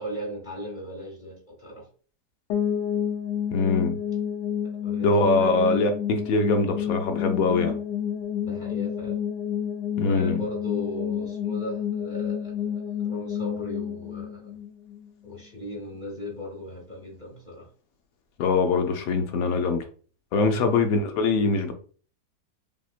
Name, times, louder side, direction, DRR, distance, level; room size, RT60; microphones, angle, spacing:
voice 1, 0.0-1.9 4.8-5.7 8.4-9.2 10.0-14.6 15.2-17.7, left 1 dB, 30° left, 1.3 m, -37 dB
sound 1, 2.5-15.4, left 8 dB, 85° left, 1.2 m, -30 dB
voice 2, 3.5-4.0 5.0-7.8 10.0-10.4 18.4-19.8 20.3-21.7, left 3 dB, 70° left, 1.0 m, -23 dB
3.5 x 2.9 x 2.4 m
omnidirectional pair, 1.7 m